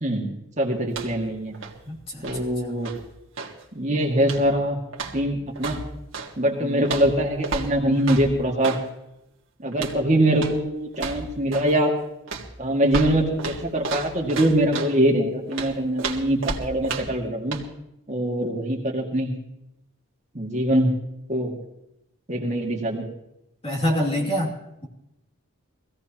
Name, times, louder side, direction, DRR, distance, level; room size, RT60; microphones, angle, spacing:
voice 1, 0.6-1.6 2.2-2.9 3.7-4.8 5.1-5.8 6.4-8.7 9.6-11.9 12.6-17.6 18.1-19.3 20.3-20.9 21.3-21.5 22.3-23.1, right 1 dB, 35° right, -1 dB, 2.1 m, -23 dB
sound 1, 0.9-1.3 1.5-3.6 4.2-4.6 4.9-6.3 6.8-8.9 9.7-10.0 10.3-10.6 10.9-11.8 12.3-15.0 15.5-17.2 17.5-17.7, right 4 dB, 65° right, 1.9 m, -33 dB
voice 2, 1.9-2.5 6.6-6.9 23.6-24.9, equal, 25° left, -1 dB, 2.7 m, -27 dB
23.0 x 16.5 x 3.0 m, 0.84 s
head